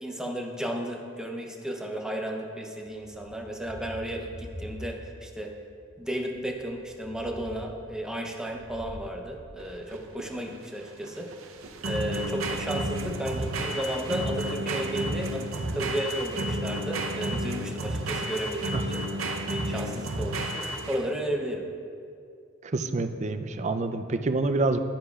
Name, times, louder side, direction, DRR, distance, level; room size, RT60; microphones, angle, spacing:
voice 1, 0.0-5.5 6.0-11.3 11.9-19.1 19.5-21.7, right 1 dB, 5° right, 1 dB, 0.7 m, -33 dB
Thunder, 2.8-5.2 5.6-10.4 11.4-14.1, equal, 50° left, 2.5 m, -46 dB
sound 1, 9.6-21.2, right 1 dB, 85° right, 0.7 m, -32 dB
voice 2, 22.6-24.8, right 3 dB, 35° right, 8 dB, 0.4 m, -27 dB
12.0 x 9.9 x 2.4 m, 2.4 s
head